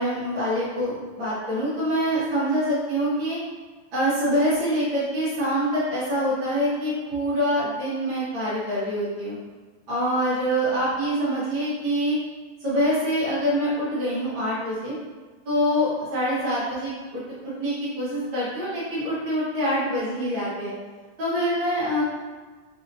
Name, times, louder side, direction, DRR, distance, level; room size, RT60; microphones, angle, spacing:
voice 1, 0.0-3.4 3.9-9.4 9.9-12.2 12.6-14.9 15.4-20.7 21.2-22.0, equal, 60° right, -10 dB, 1.2 m, -25 dB
6.0 x 2.8 x 2.7 m, 1.4 s
omnidirectional pair, 4.5 m